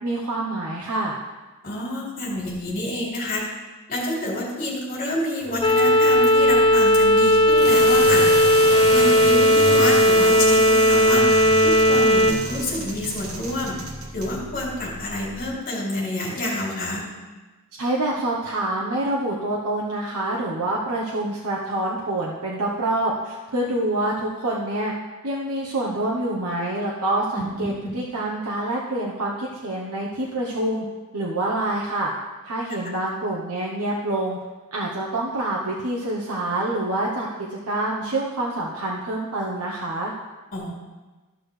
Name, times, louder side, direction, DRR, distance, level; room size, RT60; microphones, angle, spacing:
voice 1, 0.0-1.2 17.7-24.9 25.2-30.8 31.1-32.1 32.4-34.4 34.7-40.1, right 1 dB, 85° right, -3 dB, 1.1 m, -26 dB
voice 2, 1.6-3.4 3.9-8.3 8.9-11.2 11.6-13.8 14.1-17.0 27.3-27.9 32.8-32.9 40.5-40.7, left 1 dB, 40° left, -5 dB, 3.1 m, -28 dB
sound 1, 5.4-15.5, right 2 dB, 70° right, 1.4 m, -32 dB
sound 2, 5.6-12.3, equal, 20° left, 0.7 m, -16 dB
14.0 x 6.3 x 3.3 m, 1.2 s
head